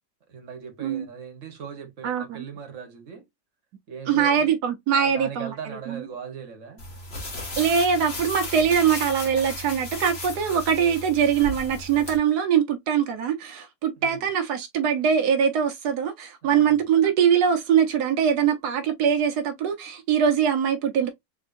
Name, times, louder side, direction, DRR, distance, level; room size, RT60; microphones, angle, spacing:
voice 1, 0.3-3.2 3.9-4.5 4.9-6.9 14.0-14.3 16.4-16.7, right 6 dB, 55° right, 1.5 m, -39 dB
voice 2, 2.0-2.5 4.1-5.5 5.9-6.0 7.6-21.1, right 7 dB, 85° right, 1.4 m, -22 dB
sound 1, 6.8-12.2, left 1 dB, 40° left, 1.8 m, -35 dB
3.8 x 3.5 x 2.5 m
omnidirectional pair, 1.6 m